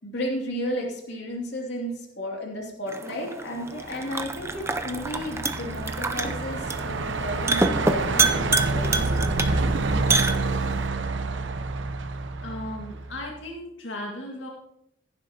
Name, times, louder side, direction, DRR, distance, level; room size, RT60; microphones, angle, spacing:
voice 1, 0.0-9.9, equal, 65° left, -1 dB, 2.7 m, -33 dB
sound 1, 2.9-10.9, right 3 dB, 15° right, 0.6 m, -28 dB
Truck, 3.8-13.2, right 3 dB, 80° right, 0.8 m, -28 dB
voice 2, 12.0-14.5, left 1 dB, 90° left, -1 dB, 1.9 m, -37 dB
15.0 x 11.0 x 2.9 m, 0.78 s
head